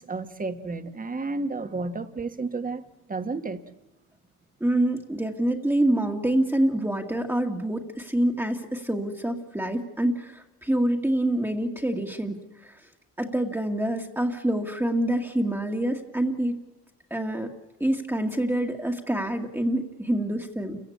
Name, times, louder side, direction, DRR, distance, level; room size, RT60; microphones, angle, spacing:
voice 1, 0.0-2.8 3.1-3.6, right 3 dB, 30° right, 1.6 m, -31 dB
voice 2, 4.6-12.4 12.6-12.7 13.2-16.6 17.1-17.5 17.8-20.8, right 1 dB, 5° right, 1.9 m, -26 dB
29.0 x 16.0 x 8.6 m
cardioid pair, 90°, 30 cm